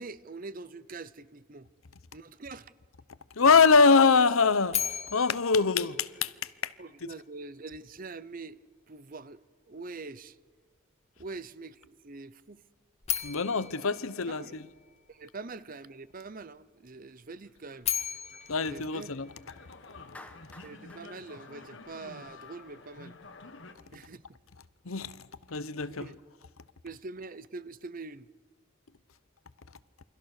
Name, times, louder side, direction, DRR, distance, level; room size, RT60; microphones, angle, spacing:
voice 1, 0.0-1.7 2.1-2.7 6.8-8.6 8.9-10.4 11.2-12.6 14.3-14.6 15.1-17.9 18.6-19.1 20.6-23.1 23.9-24.2 25.9-26.2 26.8-28.3, right 3 dB, 40° right, 0.8 m, -44 dB
voice 2, 3.3-6.7 13.2-14.7 18.5-19.3 24.8-26.1, left 4 dB, 90° left, 0.9 m, -24 dB
sound 1, 4.7-6.8 13.0-15.2 17.6-20.0, left 9 dB, 30° left, 1.9 m, -37 dB
sound 2, 17.5-23.7, left 3 dB, 60° left, 1.4 m, -50 dB
Clapping, 20.1-22.4, left 2 dB, 5° left, 1.4 m, -52 dB
28.0 x 24.5 x 6.6 m
head